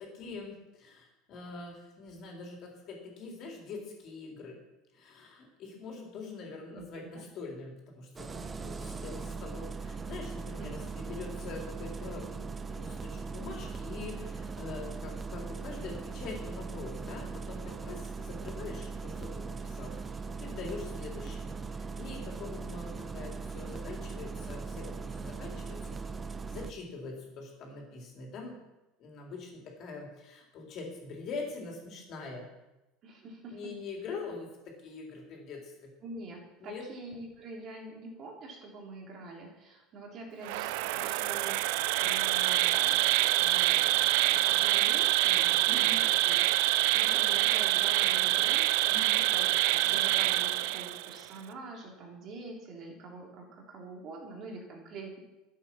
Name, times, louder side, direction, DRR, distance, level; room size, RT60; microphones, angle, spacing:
voice 1, 0.0-4.6 4.9-26.0 26.5-28.5 29.0-32.5 33.5-35.9 36.6-36.8 45.7-46.0 48.9-49.2, left 4 dB, 40° left, 0 dB, 4.0 m, -43 dB
voice 2, 6.7-7.2 10.6-10.9 33.0-33.7 36.0-49.0 49.2-55.2, right 3 dB, 40° right, 0 dB, 3.2 m, -45 dB
Engine starting, 8.2-26.7, right 4 dB, 15° right, 0.6 m, -39 dB
Insect, 40.4-51.2, right 16 dB, 70° right, 0.5 m, -26 dB
12.5 x 8.3 x 6.3 m, 1.0 s
cardioid pair, 155°, 0 cm